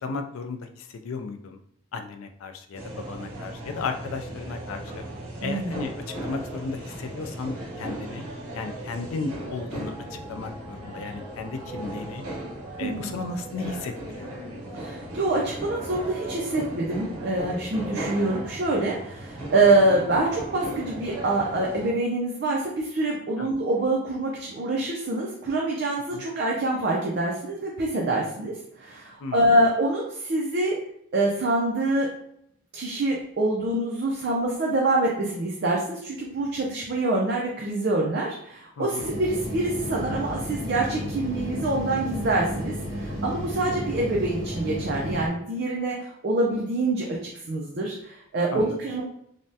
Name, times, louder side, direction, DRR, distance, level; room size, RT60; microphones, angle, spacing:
voice 1, 0.0-1.6 1.9-5.0 5.4-5.9 6.2-8.3 8.5-12.3 12.8-14.4 23.4-23.5 26.1-26.2 29.2-29.5 38.8-39.1 48.5-48.8, left 4 dB, 75° left, 7 dB, 0.4 m, -35 dB
sound 1, 2.7-21.9, right 1 dB, 80° right, 0.7 m, -37 dB
voice 2, 12.8-13.1 14.7-30.7 31.1-32.1 32.7-49.0, right 2 dB, 50° right, -2 dB, 0.4 m, -25 dB
sound 2, 39.0-45.3, equal, 65° right, 1.4 m, -32 dB
3.3 x 2.1 x 2.7 m, 0.73 s
head